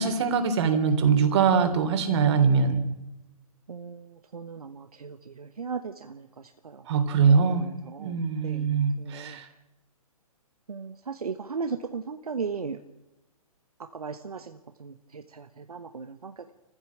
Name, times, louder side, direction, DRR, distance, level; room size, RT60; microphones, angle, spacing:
voice 1, 0.0-2.8 6.9-7.7 8.0-9.5, right 5 dB, 45° right, 7 dB, 3.3 m, -22 dB
voice 2, 3.7-9.4 10.7-12.8 13.9-16.5, right 5 dB, 75° right, 7 dB, 1.3 m, -37 dB
27.5 x 15.5 x 7.3 m, 0.97 s
figure-of-eight pair, 130°, 19 cm